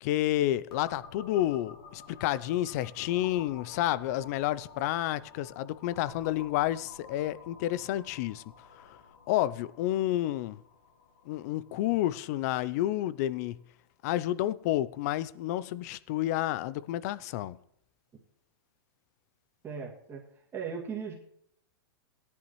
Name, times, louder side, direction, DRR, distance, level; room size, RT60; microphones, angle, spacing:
voice 1, 0.0-8.4 8.7-9.0 9.3-10.6 11.3-13.6 14.0-17.6, left 14 dB, 45° left, 0.4 m, -30 dB
sound 1, 0.7-14.3, left 5 dB, 90° left, 3.2 m, -52 dB
voice 2, 19.6-20.2 20.5-21.2, right 6 dB, 20° right, 2.1 m, -37 dB
17.0 x 10.5 x 3.1 m
hypercardioid pair, 145°, 12 cm